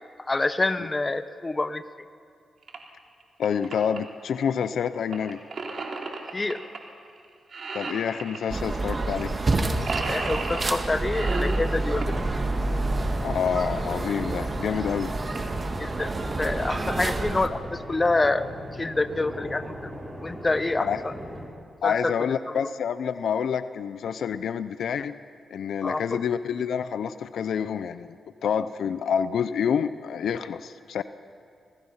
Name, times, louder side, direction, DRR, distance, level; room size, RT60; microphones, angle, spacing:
voice 1, 0.2-1.8 6.3-6.6 10.1-12.1 15.8-16.1 16.4-18.5 18.7-19.9 20.2-21.1 21.8-22.1 22.5-22.7 25.8-26.2, left 2 dB, 25° left, 12 dB, 1.1 m, -27 dB
sound 1, 2.6-2.8 3.2-4.0 5.1-6.8 7.1-7.2 7.5-8.4 9.1-9.2 9.5-10.8 11.1-12.2 13.9-14.0 14.6-14.7 14.8-14.9 15.3-15.6 16.1-16.4, right 4 dB, 60° right, 3.6 m, -34 dB
voice 2, 3.4-5.4 7.7-9.3 13.2-15.1 20.8-21.0 21.8-25.1 25.5-28.2 28.4-31.0, left 7 dB, 80° left, 12 dB, 0.7 m, -28 dB
sound 2, 8.5-17.5, right 2 dB, 35° right, 2.0 m, -28 dB
sound 3, 11.3-21.5, equal, 10° right, 5.5 m, -38 dB
27.5 x 20.0 x 5.7 m, 2.6 s
cardioid pair, 75°, 0 cm